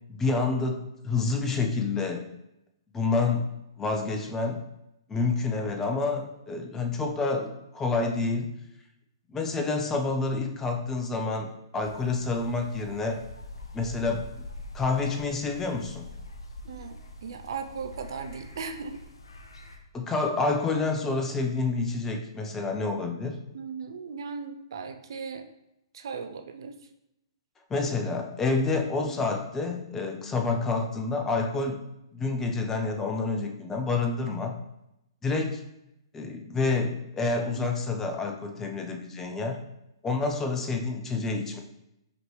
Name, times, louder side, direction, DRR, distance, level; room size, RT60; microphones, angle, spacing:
voice 1, 0.1-2.3 2.9-3.5 3.8-4.6 5.1-8.5 9.3-13.2 13.7-14.3 14.7-16.1 19.9-23.4 27.7-31.8 32.1-34.5 35.2-35.6 36.1-39.6 40.0-41.6, left 3 dB, 15° left, 3 dB, 0.5 m, -28 dB
sound 1, 11.8-19.8, left 2 dB, 75° left, 0.6 m, -44 dB
voice 2, 16.6-19.0 23.5-25.5 25.9-26.8 29.0-29.2 37.6-37.7, right 5 dB, 60° right, 7 dB, 0.4 m, -37 dB
5.0 x 2.9 x 3.2 m, 0.85 s
figure-of-eight pair, 120°, 3 cm